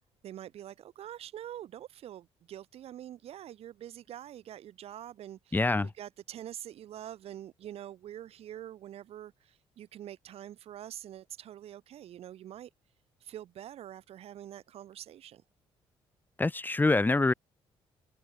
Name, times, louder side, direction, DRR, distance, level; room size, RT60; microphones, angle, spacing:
voice 1, 0.2-12.7 13.2-15.4, right 11 dB, 70° right, 7.6 m, -45 dB
voice 2, 5.5-5.9 16.4-17.3, left 2 dB, 15° left, 2.0 m, -25 dB
cardioid pair, 95°, 11 cm